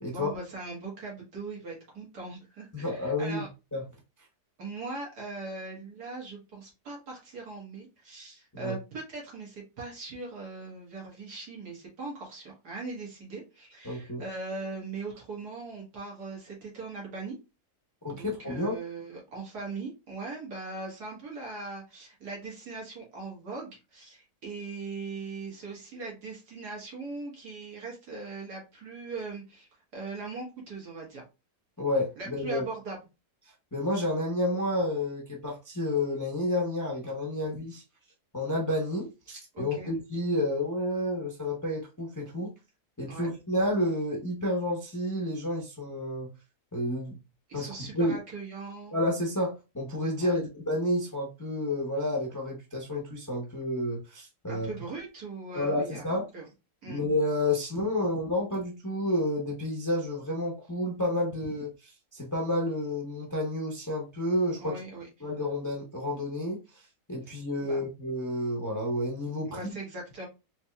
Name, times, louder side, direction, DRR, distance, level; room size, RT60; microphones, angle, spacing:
voice 1, 0.1-3.5 4.6-17.3 18.1-31.2 32.2-33.0 39.5-39.9 43.1-43.3 47.5-49.0 50.2-50.4 54.5-56.5 56.8-57.0 64.6-65.1 67.2-67.3 67.6-67.8 69.5-70.3, right 3 dB, 80° right, 2.1 m, -40 dB
voice 2, 2.7-3.5 3.7-3.8 8.5-8.7 13.8-14.2 18.0-18.8 31.8-32.6 33.7-37.8 38.3-42.5 43.0-46.3 46.7-47.2 47.5-47.7 47.9-48.2 48.9-54.7 55.5-56.2 56.8-61.7 62.1-64.8 65.2-66.6 67.1-69.6, left 1 dB, 20° left, 0.6 m, -30 dB
4.3 x 2.8 x 2.3 m
omnidirectional pair, 1.7 m